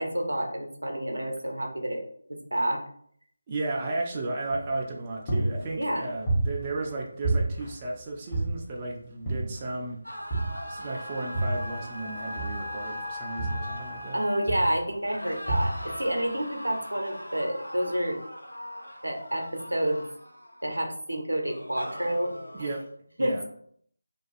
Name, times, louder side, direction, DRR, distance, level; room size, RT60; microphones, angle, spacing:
voice 1, 0.0-2.0 2.3-2.8 5.8-6.1 14.1-18.2 19.0-20.0 20.6-22.3 22.6-22.7 23.2-23.4, right 1 dB, 80° right, 2 dB, 0.6 m, -29 dB
voice 2, 3.5-10.0 10.7-14.2 22.5-22.9 23.2-23.4, right 2 dB, 20° right, -2 dB, 0.3 m, -34 dB
sound 1, 4.5-5.0 5.3-7.0 7.2-8.9 9.3-9.8 10.3-11.9 12.4-14.1 14.5-14.9 15.5-16.1, right 2 dB, 20° left, 0.8 m, -30 dB
sound 2, 10.0-14.7 15.0-20.9 21.4-22.8, equal, 90° left, 0.5 m, -41 dB
Wind instrument woodwind instrument, 10.3-14.9, left 2 dB, 65° left, 1.1 m, -39 dB
2.4 x 2.2 x 2.4 m, 0.64 s
figure-of-eight pair, 160°, 0 cm